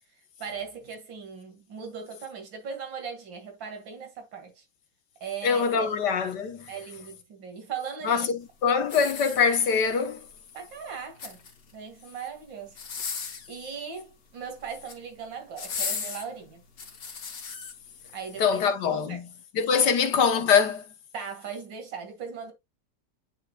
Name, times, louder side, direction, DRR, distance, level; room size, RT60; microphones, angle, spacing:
voice 1, 0.4-4.6 5.2-5.9 6.7-8.3 10.5-11.4 11.7-12.8 13.1-16.6 18.1-18.6 18.9-19.2 19.8-19.9 21.1-22.5, right 6 dB, 90° right, 2.7 m, -39 dB
voice 2, 5.4-6.7 8.0-10.2 18.4-19.3 19.5-20.8, left 6 dB, 70° left, 1.6 m, -23 dB
sound 1, 8.8-9.9 11.0-11.7 12.7-13.5 14.6-15.0 15.6-17.7 18.3-18.4, left 5 dB, 55° left, 1.8 m, -36 dB
10.5 x 4.4 x 2.3 m
omnidirectional pair, 2.0 m